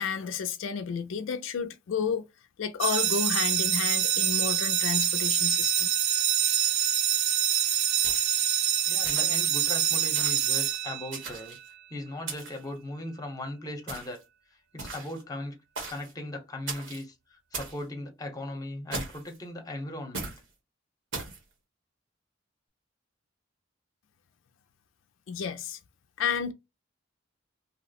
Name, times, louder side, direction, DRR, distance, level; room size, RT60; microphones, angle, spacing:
voice 1, 0.0-2.2 2.6-5.9 25.3-25.8 26.2-26.5, left 6 dB, 80° left, 0.4 m, -31 dB
sound 1, 2.8-11.5, right 9 dB, 55° right, 0.5 m, -26 dB
sound 2, 8.0-8.5 9.0-9.5 10.1-10.5 11.1-11.7 12.3-12.7 13.9-14.2 14.8-15.2 15.8-16.1 16.7-17.0 17.5-17.8 18.9-19.4 20.1-20.4 21.1-21.4, right 3 dB, 70° right, 1.1 m, -38 dB
voice 2, 8.9-11.6 11.9-14.2 14.7-15.6 15.9-17.1 17.5-20.3, left 1 dB, 20° left, 0.8 m, -38 dB
2.8 x 2.0 x 4.0 m
head